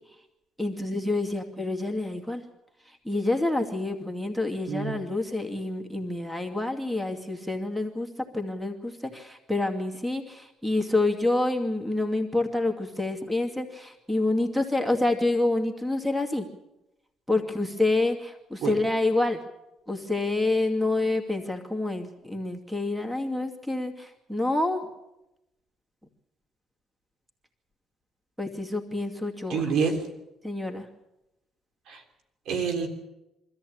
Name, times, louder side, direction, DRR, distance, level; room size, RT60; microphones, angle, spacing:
voice 1, 0.6-2.4 2.9-16.5 17.3-19.4 19.9-24.8 28.4-29.6 30.4-30.9, left 2 dB, 5° right, 5 dB, 2.5 m, -27 dB
voice 2, 29.5-30.0 31.9-32.0 32.5-32.9, right 6 dB, 75° right, 5 dB, 3.4 m, -27 dB
24.0 x 14.0 x 8.8 m, 0.93 s
cardioid pair, 95°, 0 cm